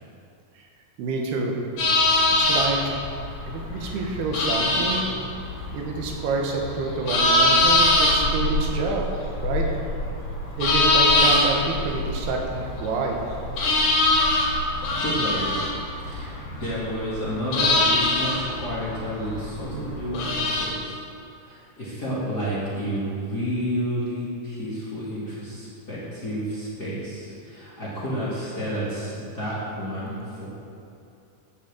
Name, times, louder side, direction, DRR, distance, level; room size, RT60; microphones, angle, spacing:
voice 1, 1.0-1.6 2.4-3.0 3.4-5.0 5.7-9.1 9.4-9.7 10.6-13.2, right 3 dB, 90° right, 1 dB, 3.2 m, -28 dB
sound 1, 1.8-20.7, left 2 dB, 70° left, 3.7 m, -23 dB
voice 2, 14.7-15.6 16.1-16.3 16.6-21.0 21.4-30.5, equal, 30° left, -9 dB, 2.0 m, -30 dB
10.5 x 6.2 x 7.6 m, 2.7 s
omnidirectional pair, 4.5 m